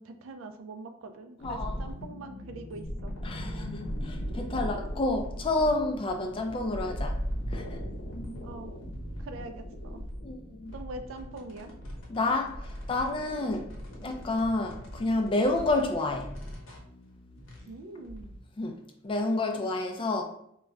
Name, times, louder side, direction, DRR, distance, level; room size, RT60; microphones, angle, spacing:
voice 1, 0.0-3.2 8.4-8.7 9.2-10.0 10.7-11.7 17.7-18.3, right 2 dB, 75° right, 7 dB, 0.4 m, -43 dB
sound 1, 1.4-18.4, equal, 75° left, 0.8 m, -39 dB
voice 2, 1.4-1.7 3.2-7.2 7.5-7.8 10.2-10.7 12.1-13.7 14.0-16.3 18.6-18.8 19.0-20.2, left 2 dB, 25° left, 4 dB, 0.3 m, -29 dB
2.2 x 2.1 x 3.6 m, 0.74 s
head